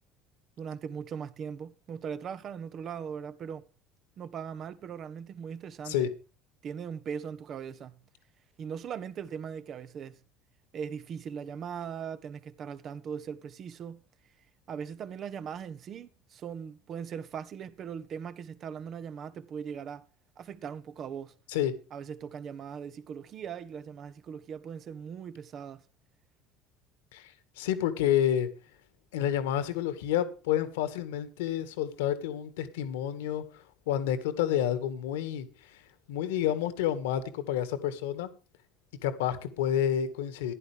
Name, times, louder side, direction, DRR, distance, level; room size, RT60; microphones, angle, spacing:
voice 1, 0.6-3.7 4.2-6.1 6.6-8.0 8.6-10.2 10.7-14.0 14.7-20.1 20.4-21.3 21.9-25.8, right 7 dB, 45° right, 1.4 m, -39 dB
voice 2, 27.1-28.5 29.1-38.3 39.0-40.5, left 10 dB, 80° left, 2.0 m, -29 dB
15.5 x 11.0 x 3.5 m
hypercardioid pair, 75°, 0 cm